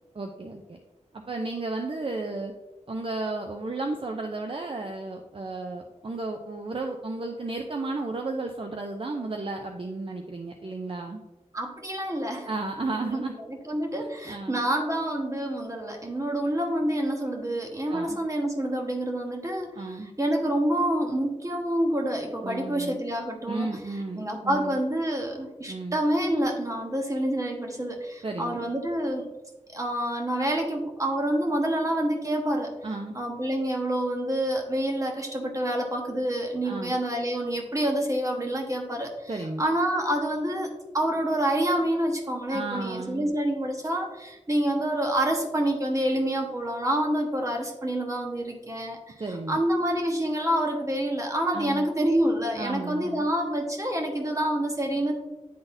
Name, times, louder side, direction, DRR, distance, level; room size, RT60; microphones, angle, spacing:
voice 1, 0.1-0.8 1.3-2.5 2.9-11.2 12.5-13.3 14.3-14.6 17.9-18.2 19.8-20.1 22.4-23.0 23.5-24.8 25.7-26.0 28.2-28.8 32.8-33.1 36.6-37.0 39.3-39.6 42.5-43.3 49.2-49.6 51.5-51.9 52.6-53.3, right 2 dB, 45° right, 3 dB, 0.5 m, -33 dB
voice 2, 11.5-12.5 13.0-29.3 29.7-32.7 33.1-39.3 39.6-49.0 49.3-55.1, right 1 dB, 25° right, 1 dB, 1.2 m, -27 dB
10.0 x 3.9 x 2.6 m, 1.0 s
wide cardioid pair, 65°, 13 cm